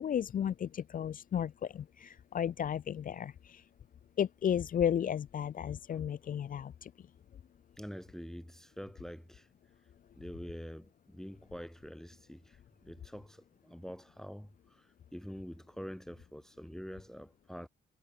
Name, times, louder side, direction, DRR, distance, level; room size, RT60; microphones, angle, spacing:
voice 1, 0.0-3.7 4.2-7.1, left 9 dB, 50° left, 0.5 m, -34 dB
voice 2, 7.8-9.5 10.1-17.7, equal, ahead, 2.2 m, -46 dB
cardioid pair, 75°, 18 cm